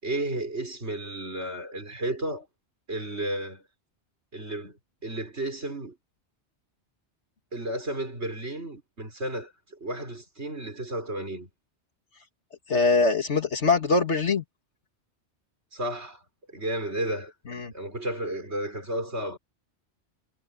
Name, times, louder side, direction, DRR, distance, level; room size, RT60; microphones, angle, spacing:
voice 1, 0.0-2.5 2.9-3.6 4.3-5.9 7.5-11.5 15.7-16.2 16.5-17.3 17.7-19.4, right 1 dB, 75° right, 6.1 m, -33 dB
voice 2, 12.7-14.4 17.5-17.7, left 4 dB, 80° left, 2.4 m, -23 dB
omnidirectional pair, 1.1 m